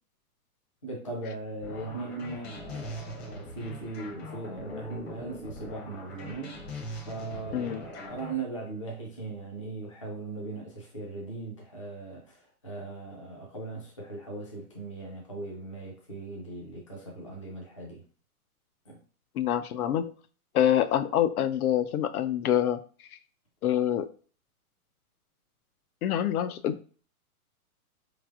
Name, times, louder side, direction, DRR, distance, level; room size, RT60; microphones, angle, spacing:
voice 1, 0.8-6.6 7.1-18.0 18.9-19.0, right 3 dB, 25° left, 0.3 m, -39 dB
sound 1, 1.6-8.3, left 1 dB, 45° left, 0.9 m, -41 dB
voice 2, 7.5-7.8 19.3-20.1 20.5-22.8 23.6-24.1 26.0-26.8, left 10 dB, 75° left, 0.5 m, -26 dB
4.0 x 3.2 x 2.4 m
hypercardioid pair, 165°, 45 cm